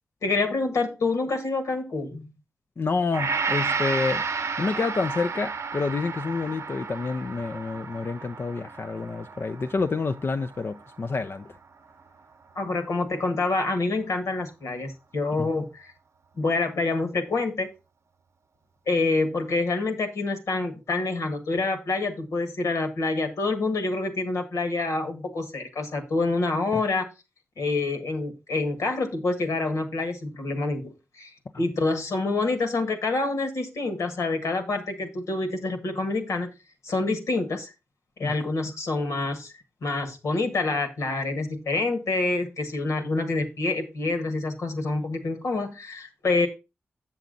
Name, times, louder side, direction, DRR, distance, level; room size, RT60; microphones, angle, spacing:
voice 1, 0.2-2.3 12.5-15.9 16.4-17.7 18.9-27.1 27.6-36.5 36.8-37.7 38.2-39.5 39.8-46.5, left 3 dB, 80° left, 1.6 m, -27 dB
voice 2, 2.8-4.2 4.6-11.5 15.4-15.5 26.7-26.8 38.2-38.3, left 4 dB, 50° left, 0.5 m, -28 dB
Gong, 3.1-11.4 11.9-12.0, right 5 dB, 65° right, 0.7 m, -32 dB
7.2 x 7.1 x 3.9 m
cardioid pair, 50°, 5 cm